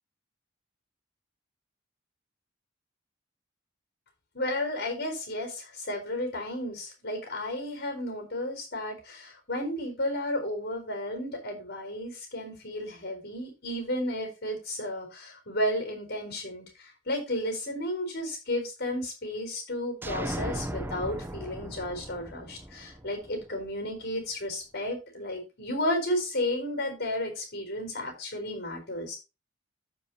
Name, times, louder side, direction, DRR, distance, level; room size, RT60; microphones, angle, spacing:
voice 1, 4.3-16.6 17.1-29.2, left 1 dB, 55° left, 5 dB, 4.3 m, -33 dB
sound 1, 20.0-23.7, right 1 dB, 10° right, 0.7 m, -37 dB
14.5 x 5.2 x 2.8 m, 0.27 s
head